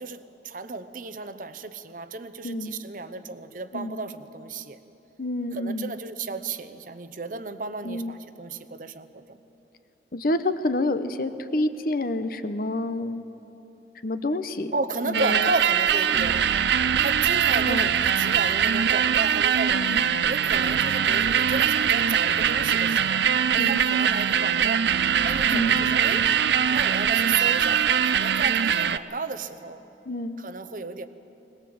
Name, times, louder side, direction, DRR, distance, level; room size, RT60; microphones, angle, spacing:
voice 1, 0.0-4.8 5.5-9.4 14.7-16.5 17.0-19.8 20.3-23.3 23.5-24.9 25.2-26.3 26.7-29.8 30.4-31.1, right 3 dB, 50° right, 10 dB, 0.8 m, -33 dB
voice 2, 5.2-5.9 7.8-8.1 10.1-13.2 14.0-14.7 15.0-15.5 17.7-17.9 19.7-20.0 23.6-23.9 25.5-25.8 30.1-30.4, left 1 dB, 55° left, 11 dB, 0.8 m, -28 dB
sound 1, 15.1-29.0, right 8 dB, 70° right, 0.5 m, -22 dB
21.5 x 19.5 x 7.8 m, 2.9 s
head